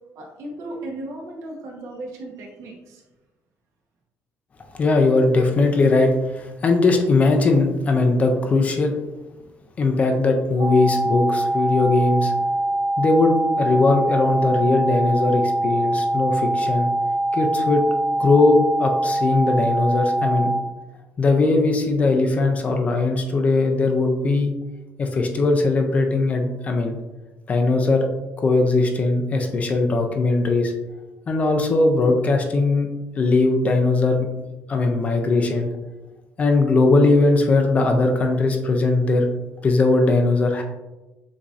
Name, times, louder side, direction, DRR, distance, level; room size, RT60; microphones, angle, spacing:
voice 1, 0.1-3.0, right 1 dB, 70° right, 0 dB, 1.0 m, -36 dB
voice 2, 4.7-8.9 9.8-12.3 13.0-16.9 17.3-17.8 18.2-20.5 21.2-24.5 25.0-27.0 27.5-28.1 28.4-30.7 31.3-32.9 33.2-34.3 34.7-35.7 36.4-39.3 39.6-40.6, left 3 dB, 25° left, 3 dB, 0.4 m, -19 dB
sound 1, 10.6-20.6, right 1 dB, 35° right, 0.5 m, -23 dB
6.9 x 2.6 x 2.4 m, 1.1 s
cardioid pair, 180°, 5 cm